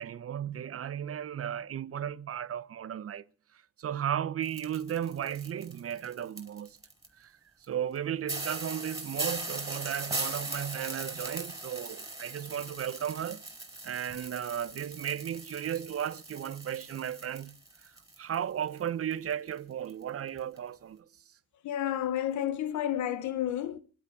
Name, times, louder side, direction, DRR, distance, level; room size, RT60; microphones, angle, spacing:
voice 1, 0.0-3.2 3.8-6.8 7.2-7.3 7.6-13.4 13.8-17.5 17.8-17.9 18.2-21.0, right 9 dB, 50° right, 1.0 m, -35 dB
sound 1, 4.4-7.1 7.6-7.7 8.0-8.1 8.3-18.4 18.6-19.6 19.9-20.0 20.4-20.6, right 2 dB, 10° right, 4.7 m, -39 dB
voice 2, 21.6-23.8, left 11 dB, 70° left, 1.2 m, -31 dB
23.5 x 8.5 x 6.8 m
cardioid pair, 90°, 30 cm